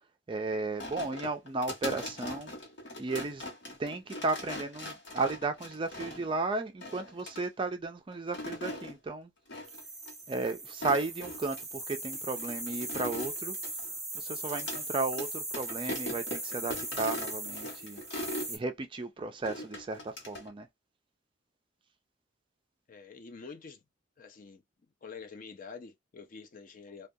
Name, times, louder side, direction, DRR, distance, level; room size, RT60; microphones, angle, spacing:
voice 1, 0.3-2.5 3.0-3.4 3.8-9.3 10.3-13.6 14.1-18.0 18.5-20.7, right 3 dB, 25° right, 0.3 m, -34 dB
sound 1, 0.8-6.4 6.8-7.5 8.1-8.9 9.5-9.8 10.1-10.2 10.7-11.6 12.1-14.8 15.1-15.3 15.5-18.5 19.4-20.5, left 1 dB, 60° left, 1.1 m, -40 dB
sound 2, 9.6-18.6, right 2 dB, ahead, 0.8 m, -39 dB
voice 2, 22.9-23.8 24.2-24.6 25.0-27.1, left 5 dB, 40° left, 0.4 m, -47 dB
2.3 x 2.2 x 2.6 m
head